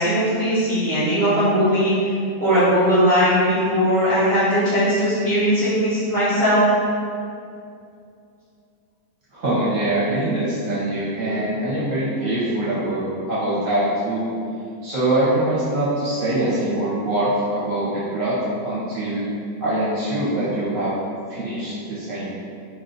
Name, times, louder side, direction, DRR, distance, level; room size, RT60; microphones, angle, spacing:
voice 1, 0.0-2.0 2.4-6.6, equal, 35° right, -13 dB, 1.0 m, -19 dB
voice 2, 9.3-14.2 14.8-19.2 19.6-20.9 21.3-22.4, right 1 dB, 50° right, -10 dB, 1.4 m, -23 dB
3.0 x 2.9 x 4.0 m, 2.5 s
omnidirectional pair, 1.9 m